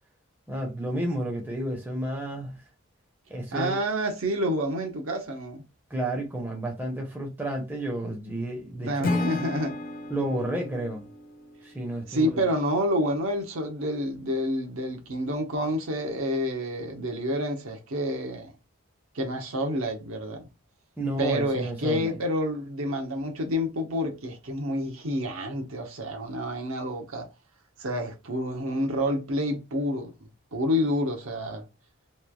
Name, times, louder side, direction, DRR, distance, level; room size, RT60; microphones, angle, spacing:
voice 1, 0.5-2.6 3.3-3.8 5.9-9.3 10.1-11.1 11.6-12.4 21.0-22.2, right 1 dB, 10° right, 0.6 m, -31 dB
voice 2, 3.5-5.6 8.8-9.8 12.1-18.5 19.1-20.5 21.2-27.3 27.8-30.1 30.5-31.6, equal, 70° right, 0.8 m, -28 dB
Acoustic guitar / Strum, 9.0-12.2, left 2 dB, 40° left, 0.3 m, -33 dB
3.1 x 2.3 x 2.2 m
head